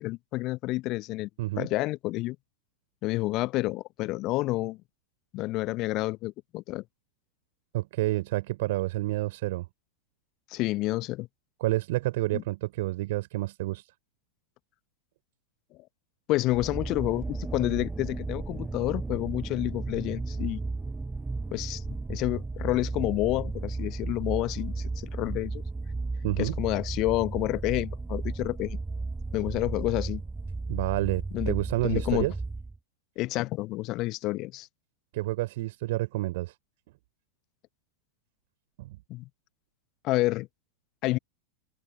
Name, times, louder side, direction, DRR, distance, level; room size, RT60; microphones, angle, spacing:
voice 1, 0.0-1.3 1.6-2.4 3.0-4.8 5.3-6.8 10.5-11.3 12.3-12.4 16.3-20.6 21.5-21.8 22.1-25.6 26.4-28.8 29.3-30.2 31.3-31.6 31.8-32.3 33.2-34.7 39.1-39.3 40.0-40.5 41.0-41.2, left 19 dB, 40° left, 1.0 m, -29 dB
voice 2, 7.7-9.7 11.6-13.9 26.2-26.6 30.7-32.3 35.1-36.5 38.8-39.0, right 18 dB, 50° right, 4.1 m, -29 dB
sound 1, 16.5-32.8, right 3 dB, 10° right, 7.4 m, -34 dB
figure-of-eight pair, 90°, 0 cm